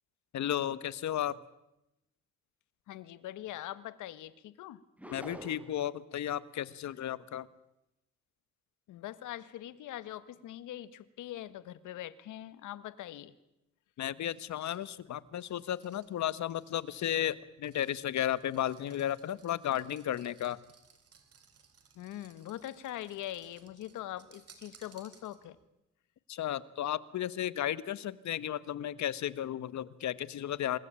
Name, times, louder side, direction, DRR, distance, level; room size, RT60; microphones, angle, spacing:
voice 1, 0.3-1.3 5.1-7.5 14.0-20.6 26.3-30.8, left 11 dB, 65° left, 17 dB, 1.3 m, -34 dB
voice 2, 2.9-4.8 8.9-13.3 21.9-25.6, left 13 dB, 85° left, 15 dB, 1.5 m, -42 dB
sound 1, 5.0-5.9, equal, 5° right, 4.0 m, -46 dB
sound 2, 14.3-25.7, right 6 dB, 50° right, 4.1 m, -62 dB
27.0 x 21.0 x 8.9 m, 0.89 s
cardioid pair, 90°, 30 cm